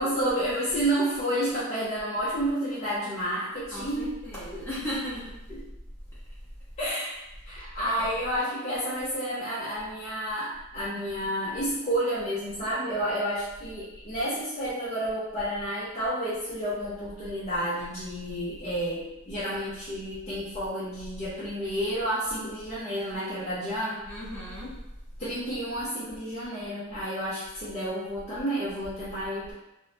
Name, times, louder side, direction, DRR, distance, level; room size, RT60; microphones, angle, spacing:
voice 1, 0.0-4.1 4.5-4.6 5.5-5.6 6.8-7.1 7.5-24.0 25.2-29.5, right 1 dB, 30° left, -10 dB, 0.5 m, -30 dB
voice 2, 3.7-5.3 8.0-8.1 24.0-24.7, equal, 10° left, -12 dB, 1.0 m, -36 dB
2.9 x 2.0 x 2.7 m, 0.92 s
head